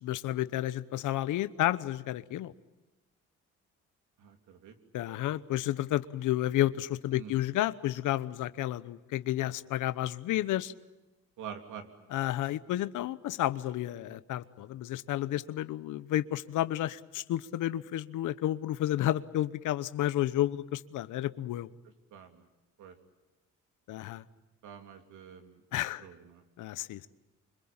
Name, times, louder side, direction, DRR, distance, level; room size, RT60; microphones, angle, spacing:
voice 1, 0.0-2.5 4.9-10.7 12.1-21.7 23.9-24.2 25.7-26.0 26.6-27.1, left 14 dB, 85° left, 15 dB, 1.0 m, -31 dB
voice 2, 4.2-4.8 7.1-7.4 11.4-11.9 22.1-22.5 22.8-23.0 24.6-25.6 26.0-26.4, right 8 dB, 85° right, 6 dB, 3.2 m, -46 dB
26.0 x 25.0 x 8.8 m, 1.1 s
cardioid pair, 90°, 30 cm